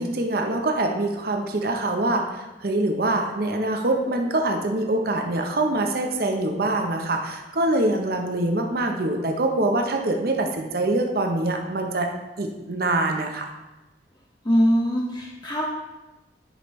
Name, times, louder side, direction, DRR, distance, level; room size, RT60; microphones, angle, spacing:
voice 1, 0.0-12.1 12.4-13.5, right 2 dB, 55° right, 3 dB, 0.8 m, -24 dB
voice 2, 14.4-15.6, equal, 25° left, -3 dB, 0.7 m, -22 dB
10.0 x 5.1 x 3.2 m, 1.1 s
head